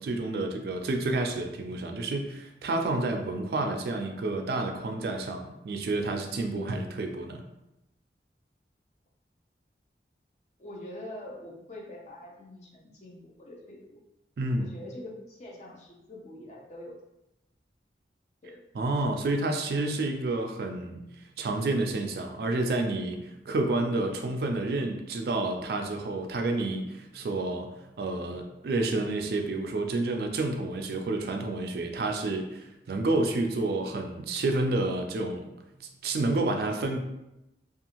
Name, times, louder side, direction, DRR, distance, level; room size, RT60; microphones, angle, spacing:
voice 1, 0.0-7.4 14.4-14.7 18.7-21.0 21.4-35.5 36.0-37.0, right 2 dB, 60° right, 4 dB, 0.3 m, -29 dB
voice 2, 10.6-14.0 14.6-17.0 18.4-18.6, left 1 dB, 40° left, -1 dB, 0.5 m, -44 dB
2.6 x 2.4 x 2.8 m, 0.90 s
head